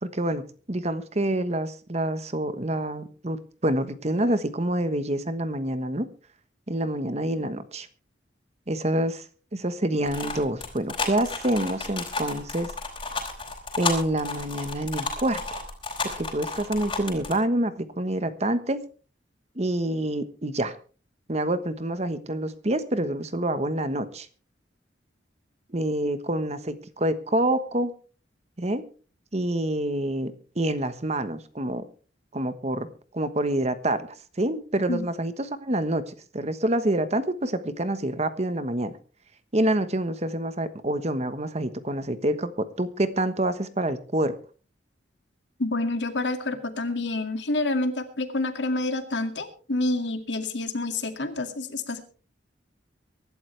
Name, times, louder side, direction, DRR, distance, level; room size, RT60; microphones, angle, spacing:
voice 1, 0.0-6.1 6.7-7.9 8.7-9.2 9.5-12.7 13.8-15.7 16.0-18.8 19.5-20.8 21.3-24.3 25.7-27.9 28.6-28.8 29.3-31.8 32.3-32.9 33.1-34.1 34.4-38.9 39.5-44.3, right 1 dB, 35° right, 12 dB, 1.2 m, -27 dB
sound 1, 10.1-17.3, left 3 dB, 25° left, 4.2 m, -32 dB
voice 2, 45.6-52.0, left 2 dB, 75° left, 8 dB, 2.2 m, -28 dB
23.5 x 12.0 x 3.3 m, 0.38 s
head